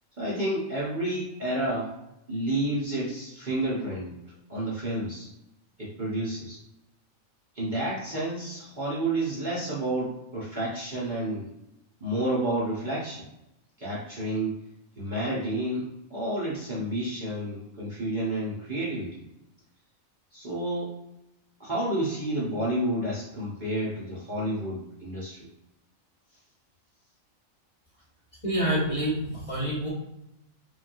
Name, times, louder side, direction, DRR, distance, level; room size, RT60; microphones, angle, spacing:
voice 1, 0.2-1.9 2.3-4.2 4.5-5.3 5.8-6.6 7.5-11.5 12.0-13.3 13.8-14.6 15.0-19.2 20.3-20.9 21.6-25.5, right 1 dB, 45° right, -8 dB, 0.7 m, -30 dB
voice 2, 28.4-29.9, right 1 dB, 30° left, -7 dB, 0.8 m, -27 dB
3.1 x 2.3 x 2.5 m, 0.89 s
omnidirectional pair, 1.4 m